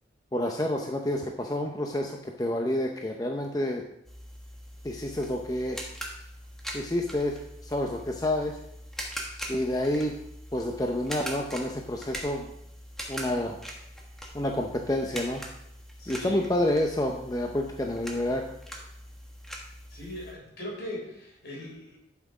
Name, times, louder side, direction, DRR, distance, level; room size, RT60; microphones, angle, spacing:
voice 1, 0.3-3.8 4.8-5.8 6.7-8.6 9.5-10.1 10.5-12.5 13.1-13.6 14.3-15.4 16.1-18.4, left 1 dB, 20° left, 2 dB, 0.7 m, -29 dB
sound 1, 4.0-20.3, equal, ahead, 1.3 m, -42 dB
voice 2, 16.0-16.5 19.9-22.0, left 1 dB, 65° left, 0 dB, 3.6 m, -39 dB
11.5 x 5.9 x 4.8 m, 0.79 s
head